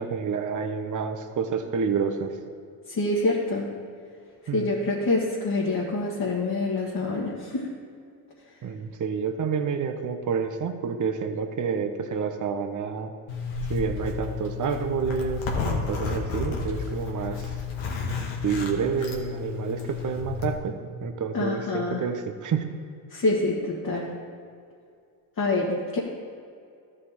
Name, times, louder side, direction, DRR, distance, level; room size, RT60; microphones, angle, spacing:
voice 1, 0.0-2.4 4.5-4.7 8.6-13.1 13.7-17.5 18.4-22.7, right 6 dB, 40° right, 6 dB, 1.0 m, -29 dB
voice 2, 2.9-3.7 4.5-7.7 21.3-22.0 23.1-24.1 25.4-26.0, left 2 dB, 45° left, -5 dB, 2.0 m, -26 dB
Zipper (clothing), 13.3-20.6, left 5 dB, 70° left, 1.7 m, -31 dB
14.0 x 4.9 x 4.3 m, 2.4 s
hypercardioid pair, 60°, 49 cm